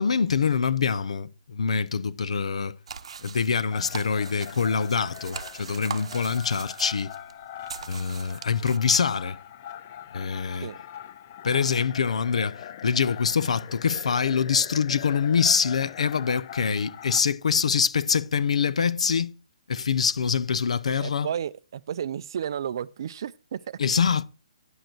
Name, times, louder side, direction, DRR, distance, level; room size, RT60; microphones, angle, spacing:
voice 1, 0.0-2.7 3.2-7.1 7.9-9.4 10.1-10.7 11.4-19.3 19.7-21.3 23.8-24.2, left 6 dB, 70° left, 0.8 m, -25 dB
sound 1, 2.9-8.8, right 6 dB, 55° right, 0.9 m, -41 dB
sound 2, 3.7-17.2, left 11 dB, 25° left, 0.4 m, -42 dB
voice 2, 21.0-23.8, right 9 dB, 40° right, 0.5 m, -32 dB
9.9 x 7.9 x 4.5 m
hypercardioid pair, 175°, 4 cm